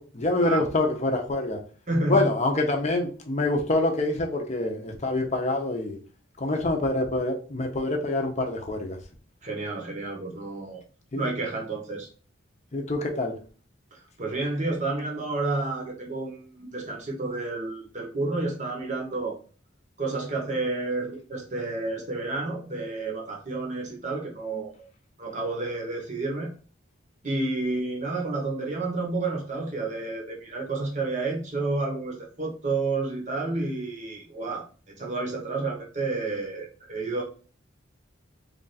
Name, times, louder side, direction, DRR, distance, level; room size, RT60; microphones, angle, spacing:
voice 1, 0.0-1.6 2.1-6.0 6.4-9.0 11.1-11.3 12.7-13.4, left 2 dB, 35° left, 2 dB, 0.6 m, -26 dB
voice 2, 1.9-2.3 9.4-10.8 11.1-12.1 13.9-19.4 20.0-24.9 25.2-26.5 27.2-34.6 35.0-37.2, right 3 dB, 35° right, 0 dB, 0.8 m, -30 dB
3.2 x 2.4 x 4.0 m, 0.39 s
head